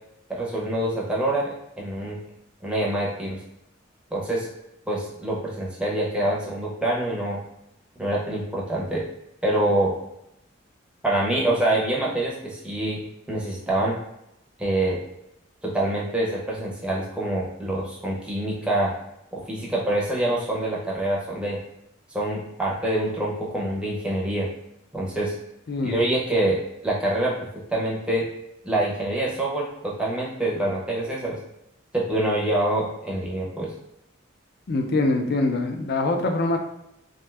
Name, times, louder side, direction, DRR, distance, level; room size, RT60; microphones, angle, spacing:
voice 1, 0.3-1.5 1.8-2.2 2.6-3.4 4.1-4.5 4.9-7.4 8.0-9.0 9.4-9.9 11.0-14.0 14.6-15.0 15.6-18.9 19.3-21.6 22.1-24.5 24.9-25.3 25.8-27.3 27.7-28.3 28.6-31.4 31.9-33.7, right 1 dB, 5° right, -4 dB, 0.5 m, -25 dB
voice 2, 25.7-26.0 34.7-36.6, left 2 dB, 55° left, 4 dB, 0.4 m, -23 dB
2.7 x 2.2 x 3.2 m, 0.82 s
head